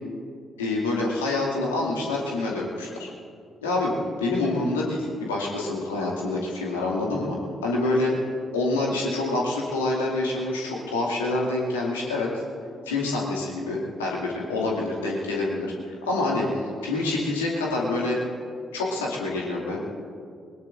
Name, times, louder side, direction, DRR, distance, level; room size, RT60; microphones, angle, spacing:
voice 1, 0.6-3.1 3.6-3.9 4.2-7.4 7.6-8.1 8.5-12.4 12.9-18.2 18.7-19.8, left 2 dB, 75° left, -3 dB, 2.3 m, -26 dB
21.5 x 20.5 x 2.6 m, 2.2 s
figure-of-eight pair, 40°, 0 cm